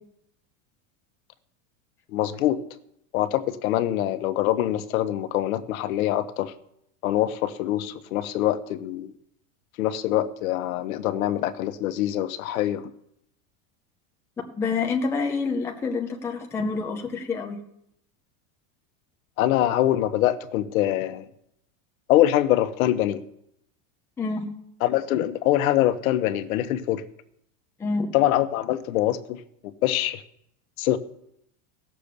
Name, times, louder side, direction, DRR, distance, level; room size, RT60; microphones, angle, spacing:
voice 1, 2.1-2.6 3.1-6.5 7.0-9.1 9.8-12.9 19.4-21.3 22.1-23.2 24.8-27.0 28.1-30.2 30.8-31.0, left 13 dB, 90° left, 11 dB, 1.1 m, -24 dB
voice 2, 14.5-17.6 24.2-24.6 27.8-28.1, left 4 dB, 5° left, 3 dB, 0.6 m, -27 dB
16.5 x 6.8 x 6.8 m, 0.76 s
supercardioid pair, 175°, 41 cm